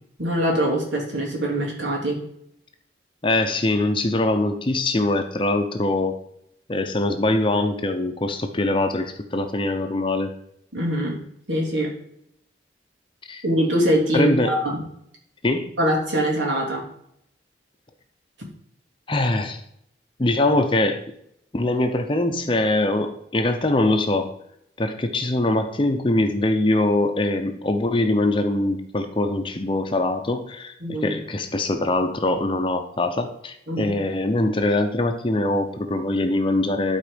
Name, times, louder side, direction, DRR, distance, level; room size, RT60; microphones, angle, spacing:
voice 1, 0.2-2.2 10.7-11.2 11.5-11.9 13.4-14.8 15.8-16.9 30.8-31.1 33.7-33.9, right 1 dB, 85° right, -2 dB, 3.0 m, -23 dB
voice 2, 3.2-6.2 6.7-10.3 13.3-13.5 14.1-14.6 15.4-15.7 19.1-19.6 20.2-21.0 21.5-24.3 24.8-37.0, left 2 dB, 30° left, 7 dB, 0.7 m, -23 dB
12.0 x 4.5 x 5.1 m, 0.73 s
head